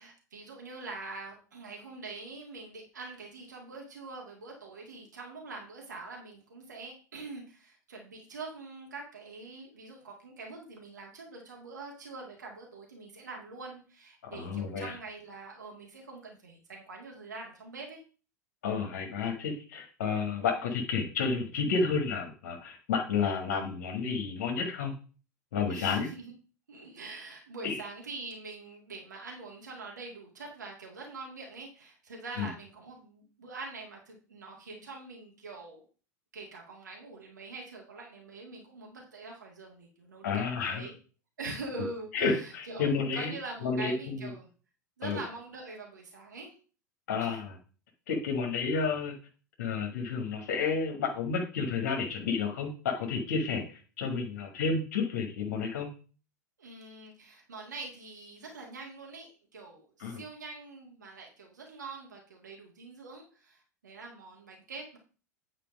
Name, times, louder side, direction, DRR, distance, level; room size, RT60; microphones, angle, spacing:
voice 1, 0.0-18.0 25.7-26.3 26.7-35.9 36.3-40.9 41.4-44.5 45.0-46.5 47.2-47.4 56.6-65.0, right 3 dB, 70° right, 0 dB, 2.0 m, -44 dB
voice 2, 14.3-14.9 18.6-24.9 25.5-26.1 27.6-27.8 32.4-32.5 40.2-40.9 41.8-41.9 42.1-43.3 43.6-44.3 45.0-45.2 47.1-47.5 48.1-49.1 49.6-55.9 60.0-60.2, left 5 dB, 60° left, 2 dB, 1.6 m, -31 dB
9.2 x 4.3 x 5.2 m, 0.38 s
figure-of-eight pair, 85°, 10 cm